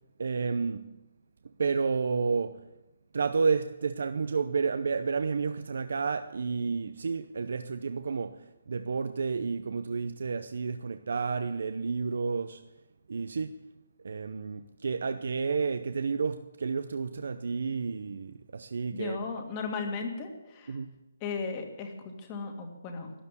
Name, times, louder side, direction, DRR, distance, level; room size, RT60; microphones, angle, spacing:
voice 1, 0.2-0.9 1.4-2.6 3.1-12.6 13.1-13.6 14.0-19.2 20.7-20.9, right 5 dB, 65° right, 0.7 m, -31 dB
voice 2, 18.9-20.8 21.2-23.1, left 4 dB, 20° left, 2.1 m, -36 dB
12.5 x 11.0 x 8.4 m
hypercardioid pair, 165°, 0 cm